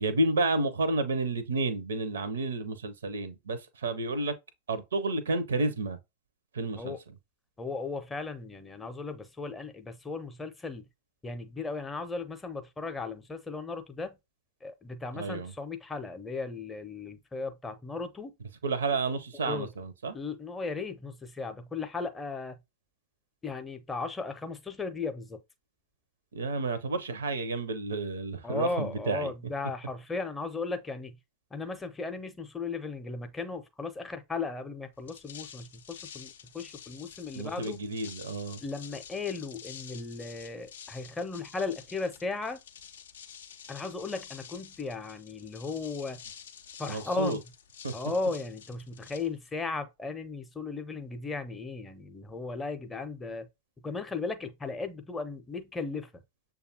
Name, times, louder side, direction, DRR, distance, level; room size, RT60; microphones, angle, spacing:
voice 1, 0.0-4.3 4.7-6.0 6.5-7.0 15.1-15.5 18.6-20.2 26.3-29.3 37.3-38.6 46.9-47.4 47.8-47.9, right 2 dB, 70° right, 0.5 m, -30 dB
voice 2, 7.6-10.9 11.2-14.2 14.6-18.3 19.5-19.7 20.1-22.6 23.4-25.4 28.4-31.2 31.5-37.8 38.6-42.6 43.7-46.2 46.8-47.4 47.9-53.5 53.8-56.1, left 3 dB, 15° left, 0.6 m, -36 dB
sound 1, 34.9-49.8, left 8 dB, 65° left, 0.4 m, -49 dB
6.7 x 2.3 x 2.8 m
figure-of-eight pair, 90°, 0 cm